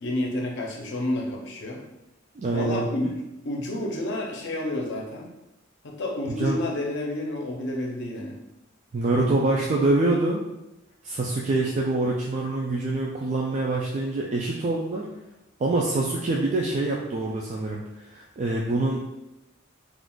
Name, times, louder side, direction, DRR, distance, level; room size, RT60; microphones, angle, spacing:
voice 1, 0.0-1.8 2.5-3.1 3.4-5.3 5.8-8.4, left 1 dB, 60° left, 0 dB, 0.6 m, -30 dB
voice 2, 2.4-2.9 6.3-6.6 8.9-10.4 11.0-15.1 15.6-19.0, right 2 dB, 35° right, -3 dB, 0.3 m, -25 dB
2.4 x 2.4 x 3.6 m, 0.93 s
head